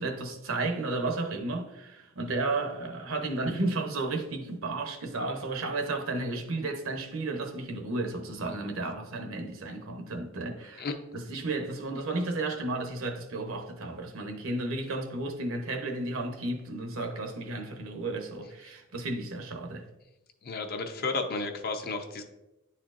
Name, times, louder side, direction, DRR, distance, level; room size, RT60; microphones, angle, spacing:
voice 1, 0.0-10.8 11.1-19.8, right 2 dB, 70° right, 0.9 m, -33 dB
voice 2, 20.4-22.2, left 3 dB, 45° left, 0.6 m, -32 dB
10.5 x 4.3 x 2.5 m
head